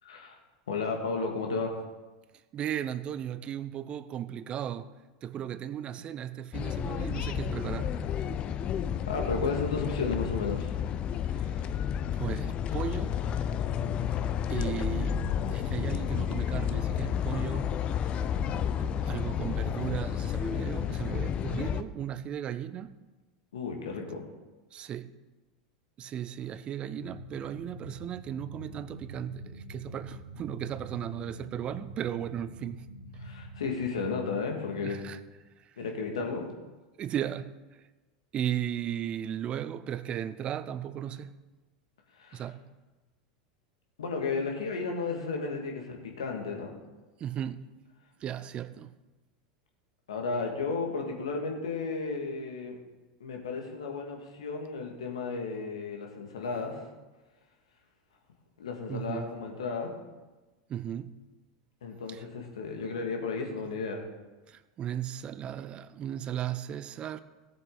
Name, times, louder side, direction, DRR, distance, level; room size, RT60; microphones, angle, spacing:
voice 1, 0.0-0.4 0.7-1.8 9.1-10.7 23.5-24.2 33.2-35.0 35.8-36.5 42.1-42.4 44.0-46.7 50.1-52.8 53.2-56.8 58.6-59.9 61.8-64.0, left 4 dB, 75° left, 2.2 m, -33 dB
voice 2, 2.5-4.9 5.2-8.0 11.3-11.6 12.1-13.2 14.5-17.8 18.8-22.9 24.7-25.1 26.0-32.8 34.8-35.2 35.6-35.7 37.0-37.8 38.3-41.4 42.3-42.6 47.2-47.7 48.2-48.9 58.9-59.3 60.7-61.2 62.1-62.2 64.5-67.2, right 10 dB, 35° right, 0.7 m, -36 dB
sound 1, 6.5-21.8, left 9 dB, 35° left, 0.6 m, -31 dB
sound 2, 26.9-33.8, right 1 dB, 75° right, 2.4 m, -45 dB
17.5 x 7.6 x 4.1 m
figure-of-eight pair, 85°, 3 cm